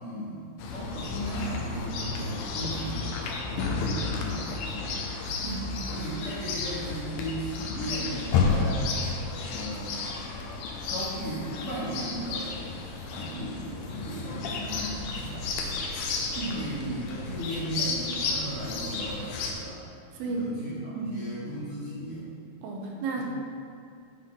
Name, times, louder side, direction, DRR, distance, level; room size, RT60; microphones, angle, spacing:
voice 1, 0.0-3.1 3.6-4.9 5.9-8.9 9.5-10.0 10.9-12.5 13.0-15.5 16.5-19.8 20.3-22.3 23.2-23.3, right 1 dB, 45° left, -9 dB, 2.4 m, -36 dB
Chirp tweet, 0.6-19.5, left 4 dB, 75° left, 2.6 m, -32 dB
voice 2, 5.4-5.8 16.4-16.7 20.1-20.5 21.0-21.2 22.6-23.2, right 3 dB, 85° right, 0 dB, 3.1 m, -33 dB
9.5 x 7.5 x 4.2 m, 2.4 s
omnidirectional pair, 4.4 m